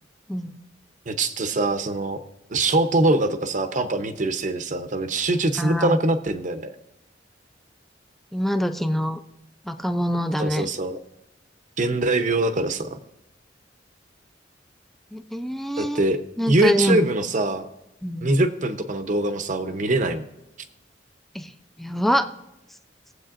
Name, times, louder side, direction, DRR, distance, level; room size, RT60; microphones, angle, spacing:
voice 1, 1.1-2.2 2.5-6.8 10.4-11.0 11.8-13.0 15.8-17.6 18.2-20.3, right 2 dB, 45° right, 9 dB, 0.7 m, -23 dB
voice 2, 5.6-6.0 8.3-9.2 9.7-10.7 15.1-16.1 16.4-17.1 18.0-18.3 21.3-21.5 21.8-22.3, equal, ahead, 8 dB, 0.4 m, -24 dB
21.5 x 7.9 x 2.5 m, 0.91 s
head